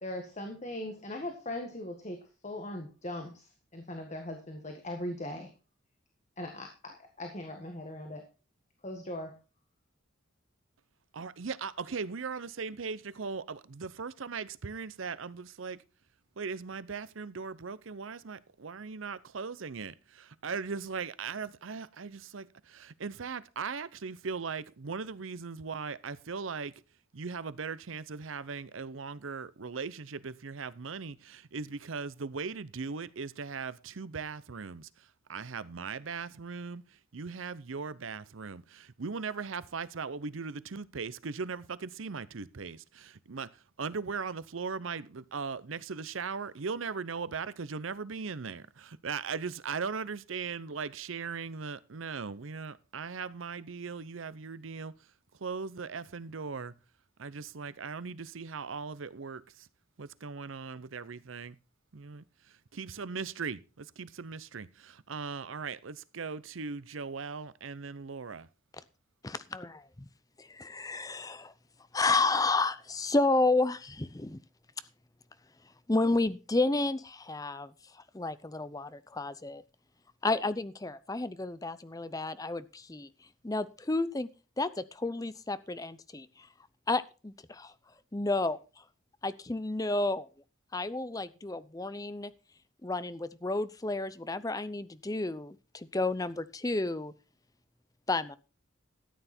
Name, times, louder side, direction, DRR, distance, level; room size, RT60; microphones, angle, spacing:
voice 1, 0.0-2.2 2.4-5.5 6.4-8.2 8.8-9.3, left 1 dB, 35° left, 1.7 m, -39 dB
voice 2, 11.1-15.8 16.4-18.4 18.6-19.9 20.4-26.7 27.1-34.9 35.3-36.8 37.1-43.5 43.8-54.9 55.4-56.7 57.2-59.7 60.0-61.6 61.9-62.2 62.7-68.5, right 5 dB, 80° right, 0.7 m, -38 dB
voice 3, 69.2-70.1 70.4-71.5 71.9-74.4 75.9-77.7 78.1-79.6 80.2-83.1 83.4-84.3 84.6-86.3 86.9-87.7 88.1-88.6 89.2-90.3 90.7-92.3 92.8-97.1 98.1-98.4, left 2 dB, 20° left, 0.6 m, -31 dB
13.5 x 9.2 x 4.3 m
head